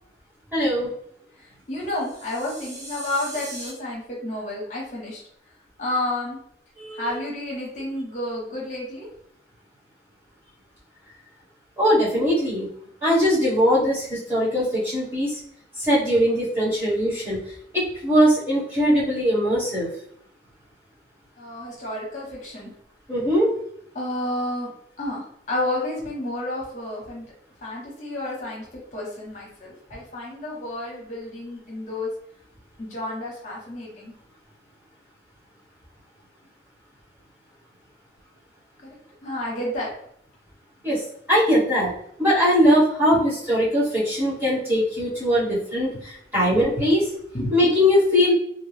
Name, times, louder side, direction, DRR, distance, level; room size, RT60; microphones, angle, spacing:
voice 1, 0.5-0.9 6.8-7.0 11.8-12.7 13.0-15.3 15.8-17.4 17.7-19.9 23.1-23.5 40.8-41.0 41.3-41.9 42.2-47.0 47.5-48.3, equal, 10° right, -9 dB, 1.1 m, -20 dB
voice 2, 1.4-5.2 5.8-6.4 6.9-9.1 21.4-22.7 23.9-24.7 25.0-27.2 27.6-28.7 28.9-32.1 32.8-34.1 38.8-39.0 39.2-39.9 43.1-43.2 46.5-46.6 47.3-47.5, left 1 dB, 40° left, -4 dB, 0.8 m, -30 dB
sound 1, 1.9-3.7, right 1 dB, 75° right, 1.2 m, -39 dB
2.6 x 2.2 x 3.2 m, 0.69 s
head